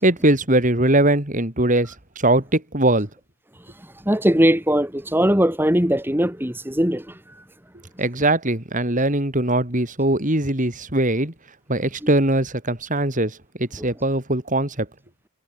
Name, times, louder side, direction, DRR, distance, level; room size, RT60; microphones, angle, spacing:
voice 1, 0.0-3.1 8.0-11.3 11.7-14.9, right 1 dB, 35° right, 3.6 m, -21 dB
voice 2, 4.1-7.2 12.0-12.1 13.8-13.9, equal, 10° right, 2.7 m, -20 dB
head